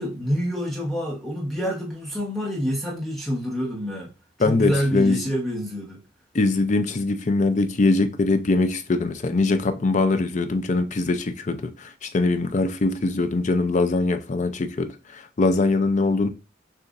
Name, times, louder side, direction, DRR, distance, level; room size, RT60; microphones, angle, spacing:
voice 1, 0.0-4.1 4.4-6.0, equal, ahead, 1.0 m, -27 dB
voice 2, 4.4-5.2 6.3-16.3, left 3 dB, 40° left, 0.5 m, -22 dB
6.7 x 2.5 x 2.5 m
head